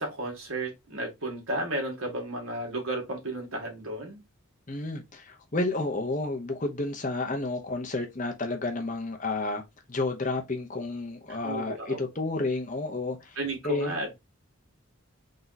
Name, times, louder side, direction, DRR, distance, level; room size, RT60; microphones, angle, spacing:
voice 1, 0.0-4.2 11.3-12.0 13.4-14.2, right 1 dB, 80° right, 1.8 m, -33 dB
voice 2, 4.7-9.6 9.9-13.4 13.6-14.0, left 2 dB, 35° left, 0.9 m, -31 dB
3.8 x 2.9 x 4.0 m
head